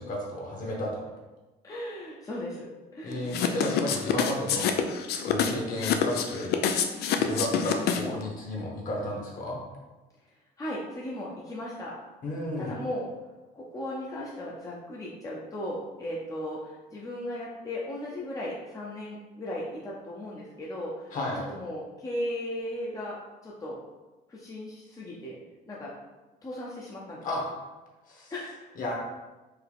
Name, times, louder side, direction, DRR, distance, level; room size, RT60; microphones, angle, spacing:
voice 1, 0.1-1.1 3.0-4.7 5.2-6.5 7.2-9.6 12.2-12.7 21.1-21.5 27.2-27.4 28.1-28.3 28.7-29.0, left 1 dB, 50° left, -2 dB, 1.5 m, -33 dB
voice 2, 1.6-3.3 7.3-7.4 10.6-12.0 12.6-13.1 13.5-21.2 21.5-23.2 23.4-23.8 24.3-25.4 25.7-25.9 26.4-27.3 28.3-28.7, left 1 dB, 20° left, -5 dB, 0.7 m, -36 dB
sound 1, 3.3-8.2, left 8 dB, 70° left, 0.5 m, -26 dB
4.6 x 2.8 x 3.5 m, 1.1 s
cardioid pair, 110°, 17 cm